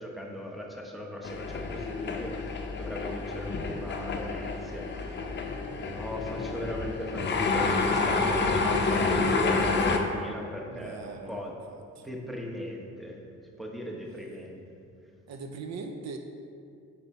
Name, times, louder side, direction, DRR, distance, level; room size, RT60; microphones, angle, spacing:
voice 1, 0.0-5.2 5.7-11.6 12.0-13.3 13.6-14.6 15.0-15.1, left 1 dB, ahead, 0 dB, 0.8 m, -38 dB
sound 1, 1.2-10.0, left 3 dB, 35° left, 0.6 m, -29 dB
voice 2, 10.7-12.1 15.3-16.2, right 4 dB, 65° right, 5 dB, 0.5 m, -41 dB
5.4 x 4.3 x 4.2 m, 2.4 s
cardioid pair, 90°, 30 cm